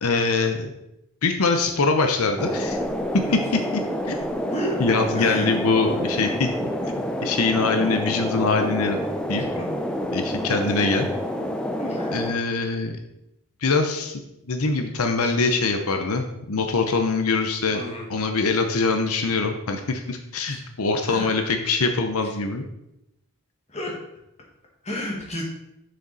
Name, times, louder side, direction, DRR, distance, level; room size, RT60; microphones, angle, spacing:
voice 1, 0.0-0.7 1.2-2.8 3.1-4.2 4.8-6.5 6.8-6.9 7.2-9.0 9.3-9.4 10.1-11.1 12.1-12.9 13.6-14.2 14.5-17.8 18.1-22.6, left 3 dB, 80° left, 5 dB, 0.8 m, -23 dB
sound 1, 2.4-12.3, equal, 5° left, 0.5 m, -28 dB
voice 2, 5.2-5.5 9.6-9.8 11.8-12.2 17.7-18.1 20.5-20.6 21.0-21.3 23.7-23.9 24.8-25.4, left 1 dB, 30° left, 0 dB, 1.7 m, -31 dB
6.7 x 6.6 x 4.1 m, 0.83 s
head